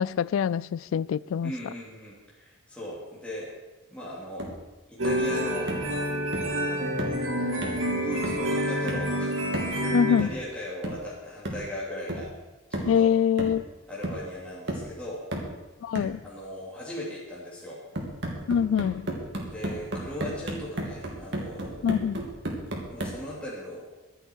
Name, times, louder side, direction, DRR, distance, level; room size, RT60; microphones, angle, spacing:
voice 1, 0.0-1.5 9.9-10.3 12.9-13.7 15.8-16.2 18.5-19.1 21.8-22.2, left 8 dB, 80° left, 0.3 m, -24 dB
voice 2, 1.4-3.5 3.9-4.5 4.9-5.7 6.6-6.9 7.9-12.3 12.7-13.1 13.9-15.2 16.2-17.8 19.4-21.8 22.9-23.8, equal, 5° left, 2.8 m, -38 dB
sound 1, 4.4-4.6 5.0-5.3 5.7-5.9 6.3-6.6 7.0-7.2 7.6-7.9 8.2-8.5 8.9-9.1 9.5-9.8 10.2-10.4 10.8-11.1 11.5-11.7 12.1-12.4 12.7-13.0 13.4-13.7 14.0-14.3 14.7-14.9 15.3-15.6 16.0-16.2 18.0-23.2, right 1 dB, 60° right, 2.7 m, -34 dB
sound 2, 5.0-10.2, equal, 80° right, 2.2 m, -28 dB
23.5 x 8.1 x 4.6 m
head